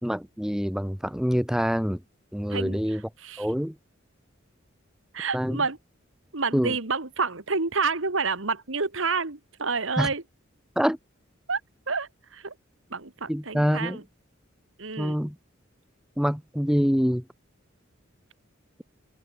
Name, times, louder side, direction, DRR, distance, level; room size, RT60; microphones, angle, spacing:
voice 1, 0.0-2.0 2.3-3.0 3.4-3.7 5.3-5.6 6.5-6.7 10.0-10.1 10.8-11.0 13.3-14.0 15.0-15.3 16.2-17.2, equal, 5° right, 0.9 m, -25 dB
voice 2, 2.5-3.5 5.1-5.8 6.3-10.2 11.5-11.6 11.9-12.5 12.9-14.0 14.8-15.2, right 4 dB, 75° right, 2.0 m, -29 dB
open air
head